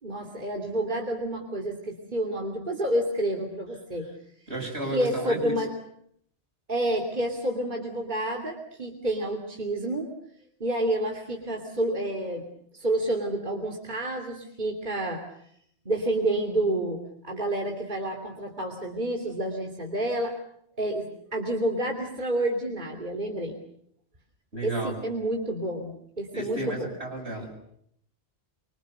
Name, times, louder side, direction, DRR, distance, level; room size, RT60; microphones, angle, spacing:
voice 1, 0.0-4.1 4.9-5.7 6.7-10.1 10.6-12.5 12.7-15.2 15.8-20.4 20.8-23.6 24.6-26.9, right 1 dB, 45° right, 2 dB, 3.2 m, -29 dB
voice 2, 4.5-5.5 24.5-25.0 26.3-27.6, right 2 dB, 70° right, 1 dB, 7.6 m, -33 dB
25.5 x 25.0 x 6.6 m, 0.68 s
omnidirectional pair, 1.1 m